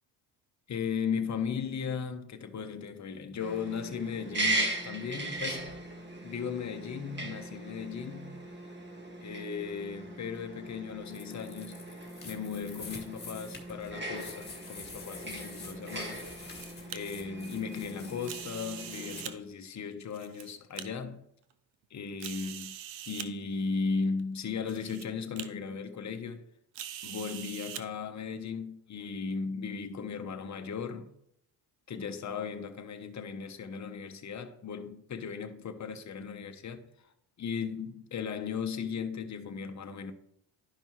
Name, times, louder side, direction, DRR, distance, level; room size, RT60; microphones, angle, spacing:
voice 1, 0.7-5.8 6.2-8.4 9.2-11.8 12.2-16.2 16.9-21.2 21.9-22.7 23.0-26.4 27.0-31.1 31.9-36.9 37.4-40.1, left 6 dB, 40° left, 1.0 m, -36 dB
sound 1, 3.4-19.3, right 2 dB, 25° right, 1.8 m, -39 dB
sound 2, 11.0-19.2, left 3 dB, 20° left, 1.9 m, -48 dB
sound 3, 16.3-17.0 18.2-19.3 20.0-20.8 21.5-21.6 22.2-23.3 24.2-24.3 24.7-25.0 25.4-25.5 26.7-27.8, right 11 dB, 85° right, 0.7 m, -42 dB
11.5 x 5.3 x 3.1 m
supercardioid pair, 75°, 45 cm